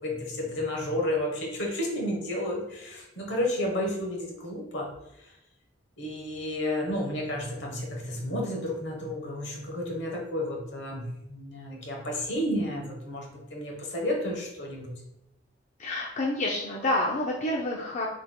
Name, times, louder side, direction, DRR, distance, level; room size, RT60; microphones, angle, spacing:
voice 1, 0.0-4.9 6.0-11.0 11.3-14.9, left 1 dB, 65° left, 1 dB, 1.1 m, -31 dB
voice 2, 15.8-18.1, left 1 dB, 40° left, -2 dB, 0.5 m, -28 dB
5.7 x 3.3 x 2.2 m, 0.86 s
head